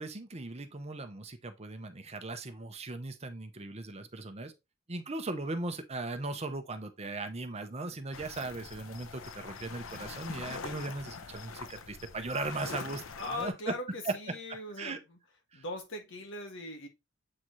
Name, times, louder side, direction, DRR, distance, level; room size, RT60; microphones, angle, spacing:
voice 1, 0.0-4.5 4.9-13.5 14.0-14.1 14.8-15.0 15.5-15.6, right 2 dB, 30° right, 0.8 m, -38 dB
sound 1, 8.1-13.5, left 4 dB, 85° left, 0.7 m, -44 dB
voice 2, 13.2-15.0 15.5-16.9, left 2 dB, 65° left, 1.6 m, -40 dB
7.5 x 4.1 x 3.1 m
head